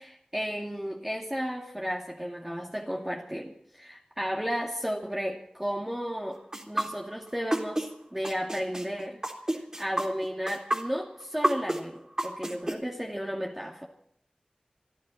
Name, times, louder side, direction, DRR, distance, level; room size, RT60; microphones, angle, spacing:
voice 1, 0.0-6.4 6.7-9.2 9.5-13.9, equal, 10° right, -1 dB, 2.5 m, -33 dB
sound 1, 6.5-7.9 8.2-12.7, right 1 dB, 25° right, 3.6 m, -29 dB
28.5 x 11.5 x 4.2 m, 0.69 s
wide cardioid pair, 50°, 2 cm